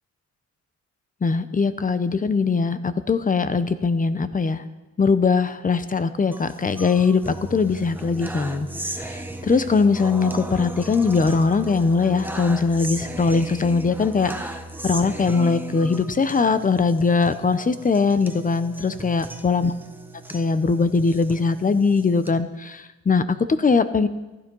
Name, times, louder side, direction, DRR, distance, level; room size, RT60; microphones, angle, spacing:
voice 1, 1.2-4.6 5.0-19.7 20.3-24.1, left 4 dB, 25° left, 13 dB, 1.0 m, -21 dB
sound 1, 6.3-22.3, right 1 dB, 5° right, 1.3 m, -36 dB
15.0 x 12.0 x 5.5 m, 1.1 s
cardioid pair, 90°, 30 cm